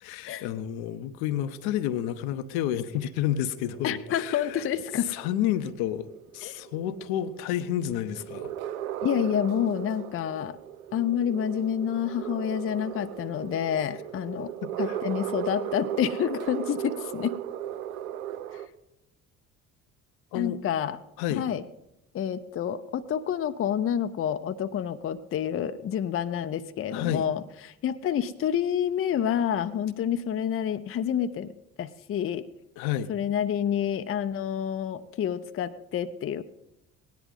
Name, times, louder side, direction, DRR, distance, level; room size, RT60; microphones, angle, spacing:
voice 1, 0.0-4.6 5.1-6.1 6.3-8.5 14.6-15.0 20.3-20.6 21.2-21.4 26.9-27.3 32.8-33.1, left 11 dB, 60° left, 11 dB, 0.8 m, -30 dB
sound 1, 1.3-18.7, right 11 dB, 75° right, 0.7 m, -37 dB
voice 2, 3.8-5.1 6.4-6.6 9.0-10.6 10.9-14.5 14.8-17.3 20.3-21.0 21.3-21.6 22.1-31.5 31.8-32.5 33.1-36.4, left 9 dB, 30° left, 10 dB, 0.6 m, -28 dB
18.0 x 10.5 x 3.8 m, 0.88 s
figure-of-eight pair, 50°, 43 cm